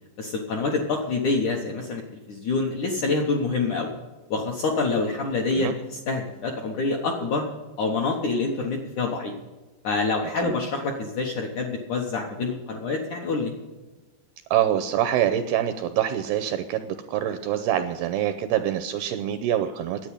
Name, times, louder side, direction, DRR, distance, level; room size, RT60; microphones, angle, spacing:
voice 1, 0.2-2.0 2.3-3.9 4.3-7.4 7.8-9.3 9.8-13.5, left 3 dB, 70° left, 1 dB, 1.9 m, -26 dB
voice 2, 14.5-20.0, right 11 dB, 85° right, 9 dB, 2.3 m, -25 dB
10.5 x 8.8 x 9.9 m, 1.2 s
omnidirectional pair, 5.1 m